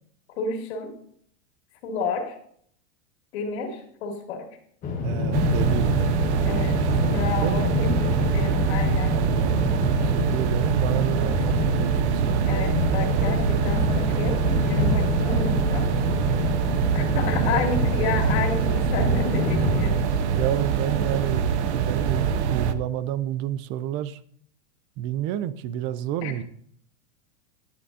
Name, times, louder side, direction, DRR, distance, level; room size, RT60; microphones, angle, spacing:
voice 1, 0.4-0.9 1.8-2.3 3.3-4.5 6.4-6.8 7.1-9.2 12.5-15.9 16.9-20.1 26.2-26.3, left 4 dB, 70° left, 2.6 m, -30 dB
sound 1, 4.8-19.8, left 4 dB, 25° left, 1.4 m, -28 dB
voice 2, 5.0-6.3 7.4-7.7 9.1-12.5 17.2-17.6 18.4-19.1 20.3-24.2 25.0-26.4, right 11 dB, 35° right, 0.4 m, -30 dB
sound 2, 5.3-22.7, right 7 dB, 80° right, 0.8 m, -24 dB
sound 3, 13.0-21.8, left 8 dB, 50° left, 1.4 m, -46 dB
10.5 x 9.6 x 2.7 m
supercardioid pair, 150°, 34 cm